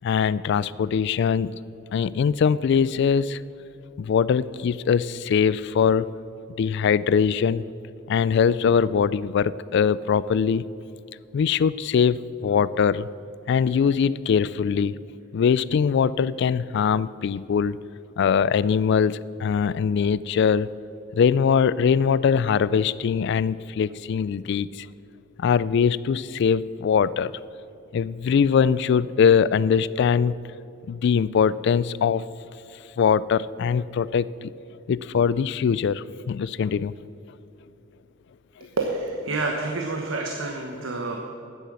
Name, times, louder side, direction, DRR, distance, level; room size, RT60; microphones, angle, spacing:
voice 1, 0.0-1.5 1.9-3.4 4.0-6.1 6.6-7.6 8.1-10.7 11.3-13.1 13.5-14.9 15.3-17.8 18.2-20.7 21.1-24.9 25.4-27.3 27.9-30.3 30.9-32.2 33.0-34.5 34.9-36.9, left 6 dB, 60° left, 19 dB, 0.3 m, -22 dB
voice 2, 38.8-41.2, right 3 dB, 85° right, 1 dB, 1.1 m, -28 dB
9.9 x 9.9 x 6.3 m, 2.8 s
head